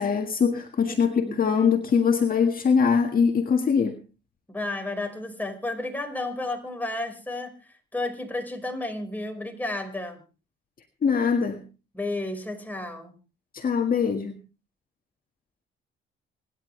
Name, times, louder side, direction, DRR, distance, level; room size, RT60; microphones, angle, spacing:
voice 1, 0.0-4.0 11.0-11.6 13.5-14.4, left 6 dB, 45° left, 4 dB, 1.8 m, -22 dB
voice 2, 0.9-1.5 4.5-7.5 7.9-10.2 11.9-13.1, left 2 dB, 10° left, 4 dB, 5.0 m, -32 dB
26.0 x 11.0 x 3.3 m, 0.33 s
cardioid pair, 90°, 20 cm